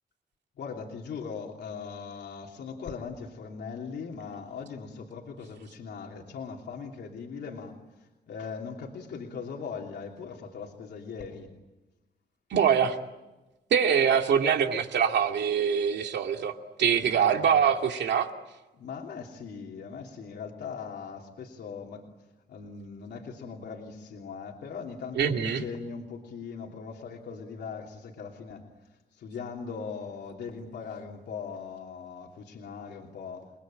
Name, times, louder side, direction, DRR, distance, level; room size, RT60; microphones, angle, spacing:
voice 1, 0.6-11.5 17.0-17.6 18.7-22.1 22.5-28.6 29.1-33.5, left 5 dB, 75° left, 0 dB, 3.1 m, -40 dB
voice 2, 12.5-13.0 13.7-18.3 25.2-25.6, right 7 dB, 80° right, 4 dB, 2.5 m, -24 dB
29.0 x 21.5 x 8.9 m, 1.1 s
wide cardioid pair, 175°, 18 cm